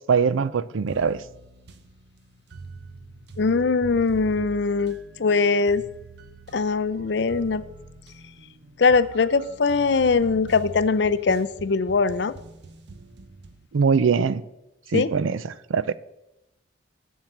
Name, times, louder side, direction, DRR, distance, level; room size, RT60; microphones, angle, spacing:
voice 1, 0.1-1.2 13.7-14.4 14.9-15.4 15.7-16.0, right 5 dB, 90° right, 0.5 m, -22 dB
sound 1, 0.9-13.7, right 3 dB, 60° right, 0.8 m, -44 dB
voice 2, 3.4-5.8 6.5-7.6 8.8-12.3 14.9-15.1, left 4 dB, 60° left, 0.5 m, -21 dB
7.4 x 7.4 x 7.9 m
head